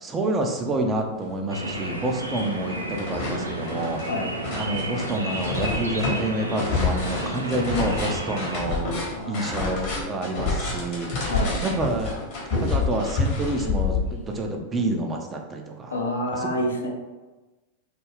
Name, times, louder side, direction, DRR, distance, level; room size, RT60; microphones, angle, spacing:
voice 1, 0.0-4.0 4.5-8.9 9.3-11.1 11.6-12.1 12.6-15.9 16.3-16.4, right 2 dB, 20° right, 2 dB, 0.4 m, -28 dB
sound 1, 1.3-1.4 1.8-2.5 2.7-14.4, left 4 dB, 45° left, 0.9 m, -28 dB
sound 2, 1.5-8.6, right 1 dB, 85° right, 0.4 m, -32 dB
voice 2, 9.1-9.4 11.3-11.6 15.9-16.9, left 1 dB, 75° left, 0 dB, 0.5 m, -28 dB
2.3 x 2.1 x 3.3 m, 1.1 s
figure-of-eight pair, 90°, 0 cm